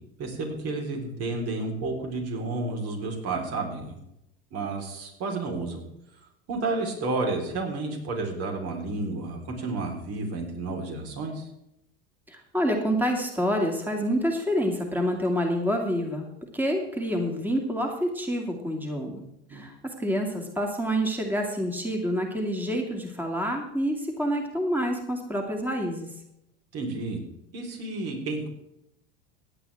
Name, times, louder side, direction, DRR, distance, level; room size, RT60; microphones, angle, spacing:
voice 1, 0.2-4.0 4.5-5.8 6.5-11.5 19.5-19.6 26.7-27.2 27.5-28.5, right 3 dB, 50° right, 2 dB, 4.0 m, -31 dB
voice 2, 12.3-16.3 16.5-19.2 19.5-26.1, equal, 5° right, 2 dB, 2.3 m, -27 dB
16.5 x 10.0 x 3.5 m, 0.82 s
supercardioid pair, 100°, 32 cm